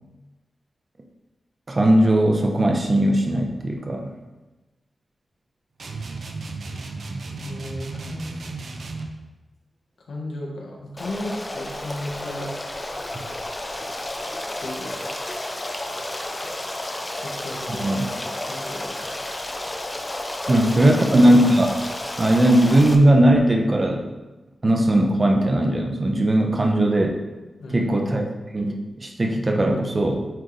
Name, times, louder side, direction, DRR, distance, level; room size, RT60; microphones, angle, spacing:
voice 1, 1.7-4.1 17.8-18.1 20.5-21.7 22.2-24.0 24.6-27.2 27.7-28.2 28.5-30.3, right 1 dB, 30° right, 2 dB, 0.9 m, -18 dB
sound 1, 5.8-9.2, right 3 dB, 60° right, 0.7 m, -34 dB
voice 2, 7.4-8.4 10.1-12.5 14.6-15.1 17.2-18.1 18.5-19.1 20.5-20.7 21.1-21.2 27.6-27.9, left 1 dB, 90° left, -1 dB, 1.4 m, -34 dB
Stream, 11.0-22.9, left 1 dB, 20° left, 0.6 m, -32 dB
8.9 x 3.3 x 4.0 m, 1.1 s
wide cardioid pair, 115°, 0 cm